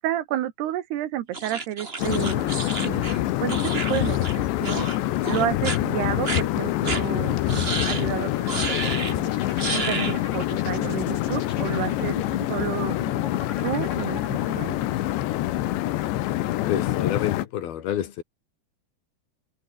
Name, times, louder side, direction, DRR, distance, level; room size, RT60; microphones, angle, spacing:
voice 1, 0.0-12.2 12.5-13.0 13.6-14.8, right 12 dB, 70° right, 3.3 m, -31 dB
sound 1, 1.3-4.4 4.6-5.0 5.2-5.8 6.2-6.4 6.8-7.0 7.5-8.1 8.5-9.1 9.6-10.2, right 3 dB, 35° right, 0.9 m, -31 dB
sound 2, 2.0-17.5, left 15 dB, 80° left, 3.5 m, -26 dB
sound 3, 8.7-14.9, left 4 dB, 40° left, 6.4 m, -39 dB
voice 2, 16.7-18.2, left 10 dB, 65° left, 3.4 m, -28 dB
omnidirectional pair, 5.0 m